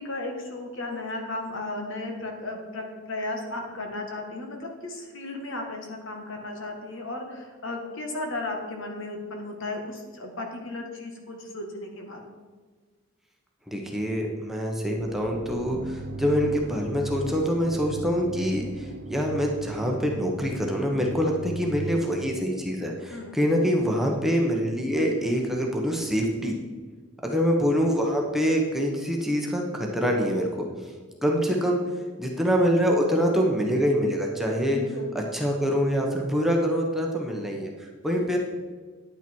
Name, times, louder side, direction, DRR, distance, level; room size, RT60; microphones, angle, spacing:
voice 1, 0.0-12.3 23.1-23.4 34.7-35.1, left 2 dB, 60° left, 2 dB, 1.9 m, -35 dB
voice 2, 13.7-26.5 27.2-30.5 31.2-31.8 32.2-34.8 35.1-38.4, equal, ahead, 0 dB, 1.2 m, -25 dB
sound 1, 15.0-22.8, right 3 dB, 50° right, 0.6 m, -38 dB
10.0 x 9.1 x 4.6 m, 1.5 s
head